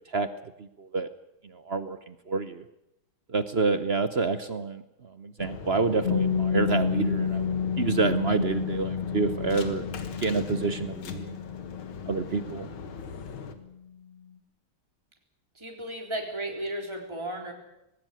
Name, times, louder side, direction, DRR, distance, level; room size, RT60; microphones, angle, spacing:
voice 1, 0.6-1.1 1.4-2.6 3.3-9.9 10.2-11.4 12.1-12.7, right 4 dB, 50° right, 11 dB, 0.8 m, -28 dB
sound 1, 5.4-13.5, left 6 dB, 80° left, 2.4 m, -39 dB
Piano, 6.0-13.3, left 7 dB, 30° left, 1.7 m, -31 dB
voice 2, 15.6-17.5, right 1 dB, 15° right, 1 dB, 3.7 m, -34 dB
19.5 x 17.5 x 9.3 m, 0.86 s
omnidirectional pair, 2.2 m